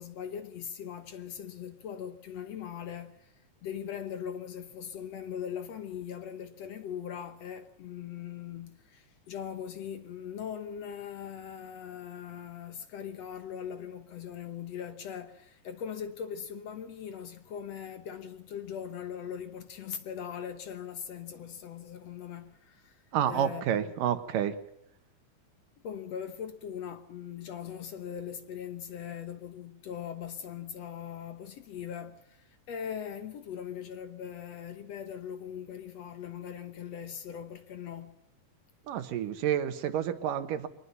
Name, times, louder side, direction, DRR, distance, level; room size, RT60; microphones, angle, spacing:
voice 1, 0.0-3.3 3.6-23.9 25.8-38.2, left 8 dB, 60° left, 2.0 m, -40 dB
voice 2, 23.1-24.5 38.9-40.7, right 9 dB, 80° right, 3.0 m, -29 dB
24.0 x 19.5 x 5.7 m
omnidirectional pair, 3.8 m